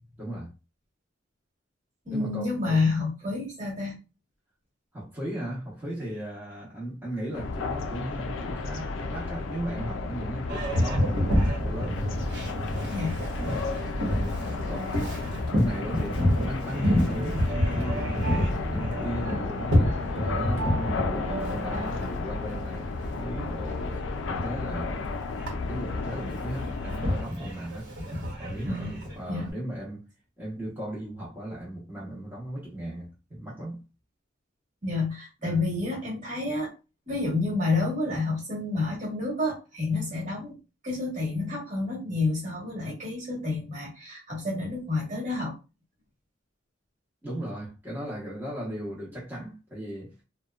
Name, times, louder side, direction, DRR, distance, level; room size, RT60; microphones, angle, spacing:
voice 1, 0.2-0.5 2.1-2.9 4.9-12.0 13.4-13.8 14.7-15.2 15.5-20.0 20.3-25.0 25.6-27.9 28.4-30.1 30.4-33.8 35.4-35.6 47.2-50.1, right 1 dB, 10° right, 0.8 m, -36 dB
voice 2, 2.0-4.0 12.9-13.2 28.6-28.9 29.3-29.5 34.8-36.7 37.1-40.6 40.8-45.5, left 3 dB, 40° right, 1.3 m, -29 dB
sound 1, 7.3-27.2, left 3 dB, 70° left, 0.4 m, -33 dB
Boat Water vehicle, 10.5-29.5, equal, 60° right, 1.0 m, -29 dB
sound 2, 17.1-22.1, right 2 dB, 85° right, 0.5 m, -38 dB
2.8 x 2.1 x 2.3 m
head